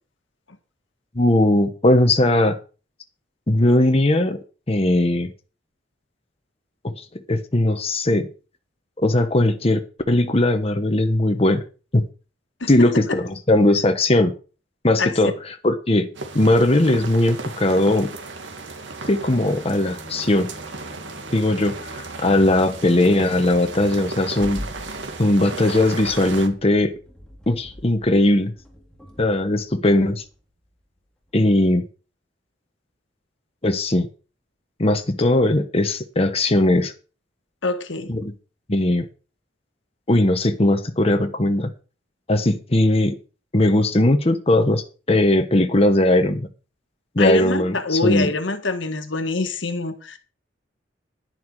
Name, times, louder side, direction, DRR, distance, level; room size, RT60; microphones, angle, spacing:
voice 1, 1.1-2.6 3.5-4.4 4.7-5.3 6.8-8.3 9.0-9.8 10.1-11.6 11.9-12.0 12.7-14.3 14.8-15.3 15.6-18.1 19.1-20.5 21.3-24.6 25.2-26.9 27.5-28.5 29.2-30.2 31.3-31.8 33.6-34.1 34.8-36.9 38.1-38.3 38.7-39.1 40.1-41.7 42.3-43.2 43.5-46.5 47.1-48.3, left 1 dB, 35° left, 1.1 m, -19 dB
sound 1, 16.1-26.5, right 3 dB, 75° right, 2.1 m, -35 dB
sound 2, 19.5-31.0 31.3-31.5, equal, 5° left, 3.2 m, -44 dB
voice 2, 37.6-38.1 47.2-50.2, left 3 dB, 80° left, 1.6 m, -24 dB
11.0 x 10.5 x 4.7 m
head